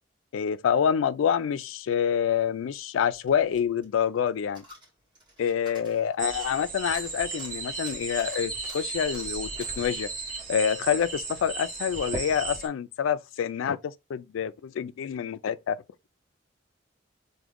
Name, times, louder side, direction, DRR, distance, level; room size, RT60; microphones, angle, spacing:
voice 1, 0.3-4.6 5.4-9.5 9.8-10.1 10.5-15.8, left 8 dB, 90° left, 0.3 m, -27 dB
Coin (dropping), 3.1-11.5 11.8-11.9, equal, 25° right, 2.0 m, -52 dB
sound 1, 6.2-12.7, right 4 dB, 40° right, 1.1 m, -35 dB
3.6 x 2.1 x 3.5 m
head